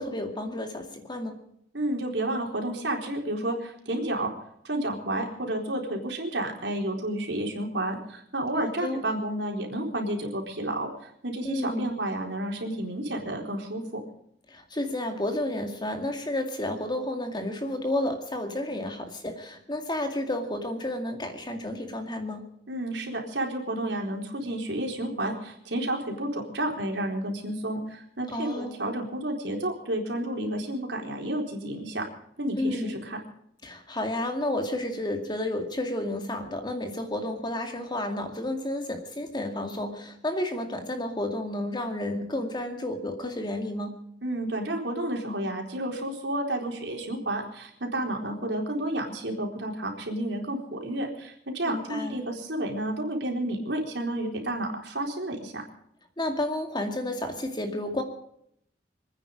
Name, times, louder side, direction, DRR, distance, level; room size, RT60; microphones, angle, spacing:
voice 1, 0.0-1.4 8.6-9.0 11.4-12.0 14.5-22.5 28.3-28.7 32.6-33.0 33.6-44.0 51.7-52.1 56.2-58.0, left 1 dB, 25° left, 4 dB, 2.3 m, -31 dB
voice 2, 1.7-4.3 4.6-10.9 11.2-14.0 22.7-32.0 32.4-33.2 44.2-55.6, right 1 dB, 75° right, 1 dB, 4.1 m, -31 dB
26.5 x 9.8 x 5.2 m, 0.70 s
head